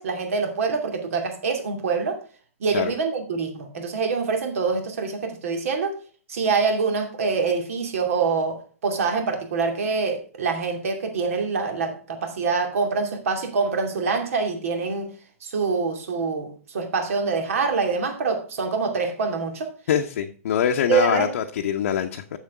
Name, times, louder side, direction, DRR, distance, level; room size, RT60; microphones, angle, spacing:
voice 1, 0.0-2.2 2.6-6.0 6.3-8.6 8.8-15.1 15.4-19.7 20.9-21.3, right 4 dB, 65° right, 4 dB, 2.5 m, -25 dB
voice 2, 19.9-22.4, left 9 dB, 60° left, 3 dB, 0.9 m, -24 dB
7.3 x 7.3 x 4.7 m, 0.40 s
figure-of-eight pair, 110°, 8 cm